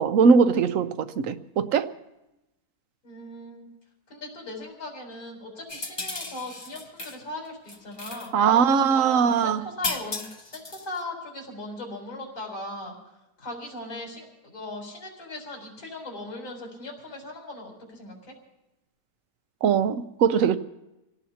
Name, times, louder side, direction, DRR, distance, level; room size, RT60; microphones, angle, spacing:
voice 1, 0.0-1.9 8.3-9.6 19.6-20.6, right 6 dB, 60° right, 1.1 m, -21 dB
voice 2, 3.0-3.7 4.1-12.9 13.4-18.3, left 2 dB, 70° left, 4.9 m, -38 dB
sound 1, 5.7-7.2 7.4-8.3 9.8-11.0, left 2 dB, 20° left, 0.7 m, -35 dB
27.5 x 17.5 x 2.9 m
omnidirectional pair, 1.7 m